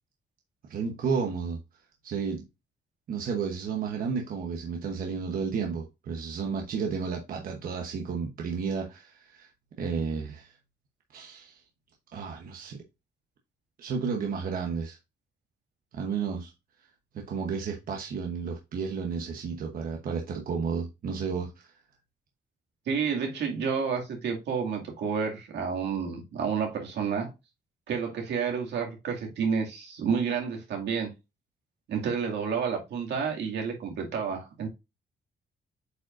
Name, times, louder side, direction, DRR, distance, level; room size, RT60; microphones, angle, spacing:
voice 1, 0.7-1.6 2.0-2.4 3.1-9.5 9.8-10.6 11.1-11.6 12.1-12.8 13.8-15.0 15.9-16.5 17.1-21.7, right 5 dB, 55° right, 1.0 m, -32 dB
voice 2, 22.9-27.3 27.9-31.1 31.9-34.7, right 6 dB, 80° right, 2.3 m, -30 dB
8.1 x 5.1 x 2.5 m
wide cardioid pair, 170°, 18 cm